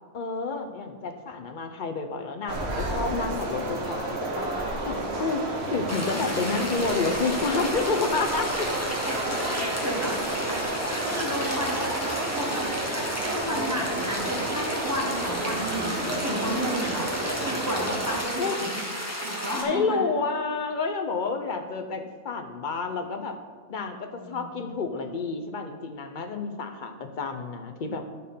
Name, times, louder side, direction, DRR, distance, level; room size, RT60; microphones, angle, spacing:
voice 1, 0.1-8.7 15.2-15.4 18.4-18.6 19.6-23.4 23.7-28.0, left 4 dB, 45° left, 6 dB, 0.7 m, -30 dB
sound 1, 2.5-18.2, right 2 dB, 50° right, 1.5 m, -31 dB
sound 2, 5.9-19.6, equal, 10° left, 1.2 m, -33 dB
voice 2, 9.1-10.3 10.9-18.7 19.2-20.0 24.2-24.5, equal, 10° right, -2 dB, 1.3 m, -33 dB
12.0 x 4.5 x 5.5 m, 1.5 s
omnidirectional pair, 1.4 m